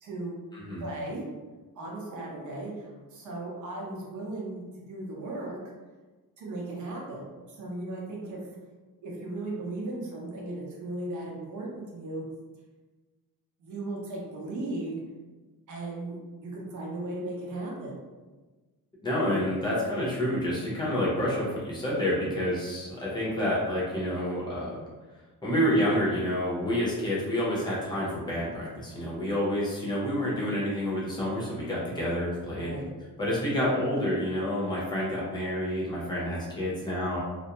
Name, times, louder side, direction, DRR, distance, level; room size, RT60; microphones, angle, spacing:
voice 1, 0.0-0.4 0.8-1.2 1.8-4.6 4.9-5.6 6.4-8.4 9.0-12.2 13.6-15.0 15.7-18.0 32.6-32.9, right 2 dB, 55° right, -3 dB, 0.7 m, -36 dB
voice 2, 0.5-0.8 19.0-24.8 25.4-32.7 33.2-37.2, equal, 10° left, -6 dB, 0.7 m, -28 dB
2.4 x 2.1 x 2.9 m, 1.3 s
cardioid pair, 140°, 35 cm